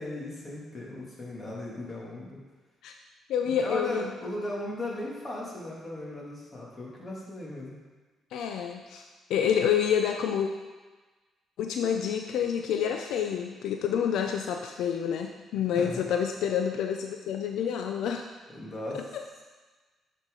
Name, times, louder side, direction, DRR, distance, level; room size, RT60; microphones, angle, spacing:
voice 1, 0.0-2.4 3.4-7.8 15.7-16.1 18.5-19.1, left 1 dB, 30° left, -4 dB, 2.4 m, -37 dB
voice 2, 3.3-4.0 8.3-9.0 9.3-10.5 11.6-18.2 18.9-19.0, left 8 dB, 80° left, 4 dB, 0.5 m, -28 dB
9.0 x 5.9 x 3.8 m, 1.3 s
cardioid pair, 90°, 0 cm